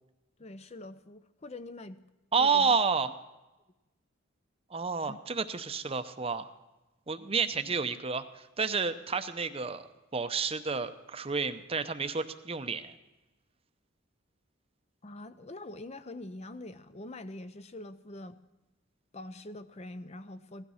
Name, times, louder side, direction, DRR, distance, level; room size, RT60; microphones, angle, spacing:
voice 1, 0.4-2.0 2.4-2.8 5.1-5.2 15.0-18.4 19.1-20.7, left 2 dB, 30° left, 13 dB, 0.6 m, -44 dB
voice 2, 2.3-3.1 4.7-6.5 7.1-13.0, right 5 dB, 30° right, 10 dB, 0.7 m, -30 dB
16.5 x 12.5 x 5.6 m, 1.1 s
head